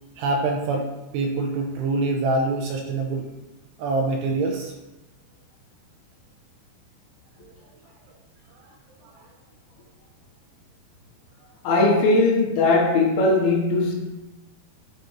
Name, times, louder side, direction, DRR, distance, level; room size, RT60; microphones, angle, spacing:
voice 1, 0.2-3.3 3.8-4.7 7.4-7.5 9.1-9.3, right 3 dB, 80° right, 2.6 m, -25 dB
voice 2, 11.7-14.0, left 2 dB, 85° left, 3.9 m, -19 dB
11.5 x 6.0 x 2.8 m
omnidirectional pair, 5.3 m